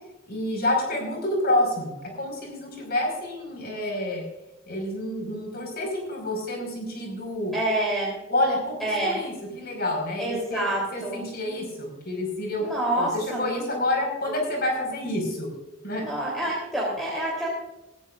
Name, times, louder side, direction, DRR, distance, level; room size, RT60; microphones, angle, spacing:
voice 1, 0.3-4.2 4.7-7.5 8.3-12.6 13.0-15.5 15.8-16.1, left 1 dB, 50° left, 1 dB, 5.2 m, -28 dB
voice 2, 7.5-8.1 8.8-9.2 10.2-11.2 12.6-13.8 14.3-14.4 16.0-17.5, right 1 dB, ahead, -5 dB, 3.5 m, -27 dB
18.0 x 14.5 x 2.6 m, 0.98 s
head